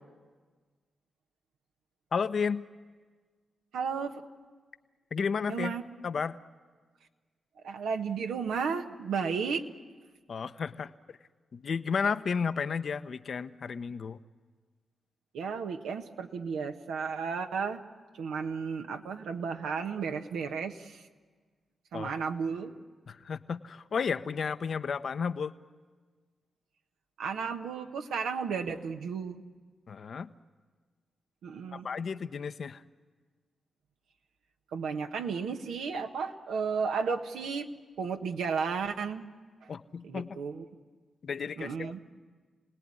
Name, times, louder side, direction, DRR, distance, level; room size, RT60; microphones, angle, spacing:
voice 1, 2.1-2.6 5.1-5.8 6.0-6.4 10.3-11.2 11.5-14.2 21.9-22.1 23.1-25.5 29.9-30.3 31.7-32.8 39.7-40.4 41.2-42.0, left 6 dB, 65° left, 12 dB, 0.8 m, -33 dB
voice 2, 3.7-4.2 5.5-5.8 7.6-9.6 15.3-17.8 18.2-21.0 21.9-22.7 27.2-29.4 31.4-31.9 34.7-37.7 38.0-39.2 40.0-40.6 41.6-42.0, right 5 dB, 85° right, 5 dB, 1.3 m, -33 dB
28.5 x 18.5 x 9.9 m, 1.5 s
supercardioid pair, 45°, 0 cm